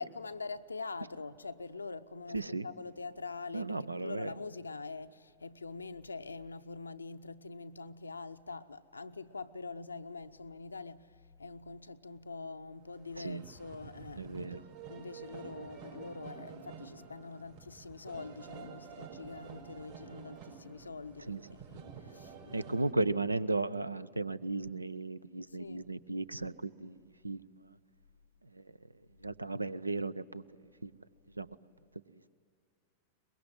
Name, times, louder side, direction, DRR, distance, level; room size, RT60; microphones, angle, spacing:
voice 1, 0.0-11.1 11.4-14.4 14.9-22.7 25.6-25.9, left 4 dB, 80° left, 0.6 m, -44 dB
voice 2, 2.3-2.7 3.5-4.3 13.2-13.4 14.2-14.6 21.3-21.4 22.5-26.9 27.2-27.4 29.2-30.4 30.8-30.9 31.4-31.5, right 2 dB, 85° right, 0.5 m, -35 dB
sound 1, 12.9-22.9, right 6 dB, 60° right, 5.2 m, -50 dB
23.5 x 21.5 x 9.8 m
figure-of-eight pair, 90°, 0 cm